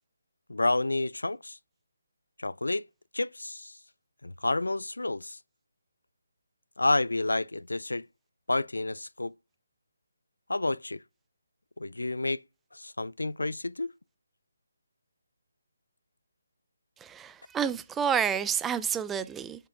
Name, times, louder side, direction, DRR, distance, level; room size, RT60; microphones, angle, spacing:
voice 1, 0.5-1.6 2.4-2.9 3.1-3.7 4.2-5.4 6.8-8.1 8.5-9.3 10.5-11.0 11.8-12.4 12.7-13.9, left 2 dB, 85° left, 0.3 m, -29 dB
voice 2, 17.0-19.7, right 8 dB, 10° right, 0.4 m, -29 dB
8.3 x 7.4 x 2.3 m
figure-of-eight pair, 150°, 0 cm